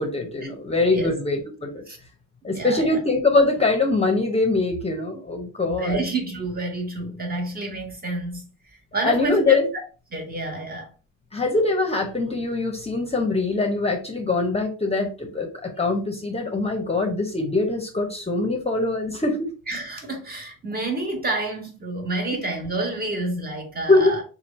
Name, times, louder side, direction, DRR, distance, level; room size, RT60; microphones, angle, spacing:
voice 1, 0.0-1.8 2.4-6.0 9.0-9.7 11.3-19.5 23.9-24.2, left 3 dB, 20° left, 0.8 m, -23 dB
voice 2, 2.5-3.0 5.8-9.6 10.1-10.9 19.7-24.2, right 2 dB, 30° right, 1.5 m, -29 dB
3.2 x 2.4 x 4.1 m
cardioid pair, 90°, 30 cm